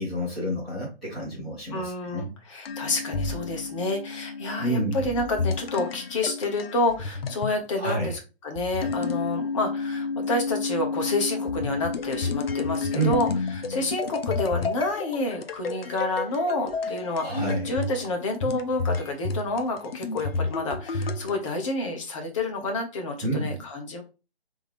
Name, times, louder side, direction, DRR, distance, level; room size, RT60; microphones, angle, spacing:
voice 1, 0.0-2.3 4.6-5.0 7.8-8.1 12.9-13.2 17.2-17.7 23.2-23.6, right 2 dB, ahead, -18 dB, 0.5 m, -28 dB
voice 2, 1.7-24.0, left 2 dB, 30° left, 3 dB, 1.1 m, -29 dB
sound 1, 2.6-7.6 8.5-21.5, left 4 dB, 65° left, 0.7 m, -31 dB
3.9 x 3.6 x 3.4 m, 0.30 s
figure-of-eight pair, 150°, 32 cm